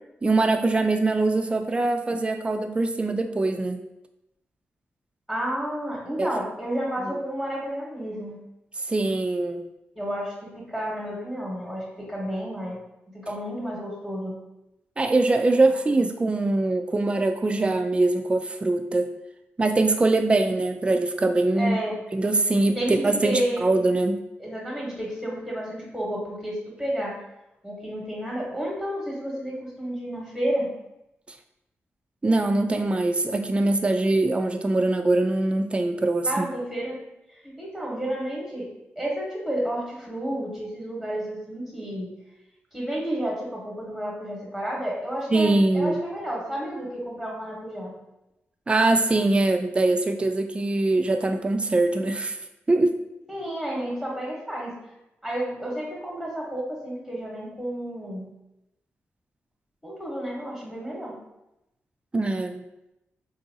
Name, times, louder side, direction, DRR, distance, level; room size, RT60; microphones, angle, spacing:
voice 1, 0.2-3.8 6.2-6.3 8.9-9.6 15.0-19.1 19.6-21.8 22.1-24.1 32.2-36.5 45.3-46.0 48.7-52.4 52.7-53.0 62.1-62.6, right 2 dB, 25° right, 6 dB, 0.3 m, -22 dB
voice 2, 5.3-8.3 9.9-12.8 13.2-14.4 15.9-16.1 21.6-22.0 22.7-23.6 24.4-27.2 27.6-30.7 36.2-37.0 37.3-38.7 39.0-42.1 42.7-47.9 53.3-54.8 55.2-58.3 59.8-61.2, right 1 dB, 5° left, -4 dB, 1.0 m, -31 dB
3.8 x 2.5 x 2.7 m, 0.89 s
cardioid pair, 75°, 5 cm